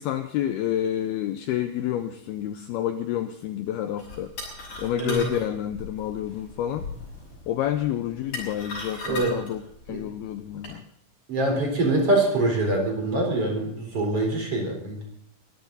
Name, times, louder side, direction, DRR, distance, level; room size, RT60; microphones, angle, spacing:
voice 1, 0.0-4.3 4.8-6.9 7.5-9.6 9.9-10.8 11.5-11.6, left 11 dB, 80° left, 8 dB, 2.3 m, -29 dB
sound 1, 4.0-10.7, left 3 dB, 40° left, 7.5 m, -39 dB
voice 2, 4.9-5.2 9.0-9.4 9.9-10.0 11.3-15.0, right 2 dB, 30° right, 2 dB, 4.6 m, -24 dB
23.0 x 14.0 x 4.1 m, 0.70 s
omnidirectional pair, 5.4 m